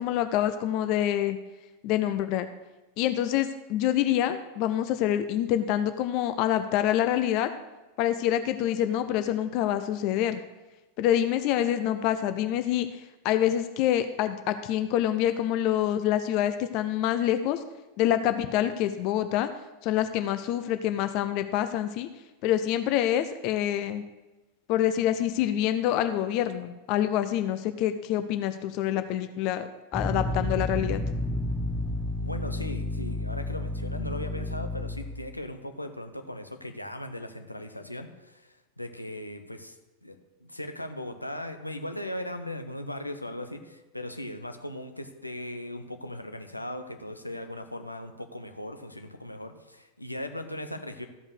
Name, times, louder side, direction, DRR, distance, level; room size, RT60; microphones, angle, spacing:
voice 1, 0.0-1.4 1.8-2.5 3.0-7.5 8.0-10.4 11.0-17.6 18.0-19.5 19.8-22.1 22.4-24.0 24.7-31.0, left 11 dB, 40° left, 10 dB, 0.6 m, -26 dB
sound 1, 29.9-35.3, left 1 dB, 10° left, 0.9 m, -31 dB
voice 2, 32.2-39.8 40.0-51.1, left 1 dB, 85° left, 6 dB, 0.9 m, -38 dB
14.0 x 5.3 x 6.3 m, 1.1 s
figure-of-eight pair, 90°, 0 cm